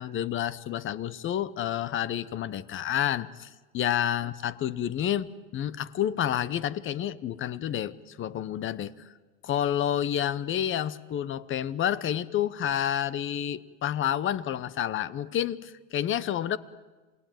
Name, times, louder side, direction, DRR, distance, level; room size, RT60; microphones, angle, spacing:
voice 1, 0.0-8.9 9.4-16.6, left 10 dB, 35° left, 19 dB, 1.0 m, -29 dB
27.5 x 19.0 x 9.2 m, 1.3 s
supercardioid pair, 110°, 36 cm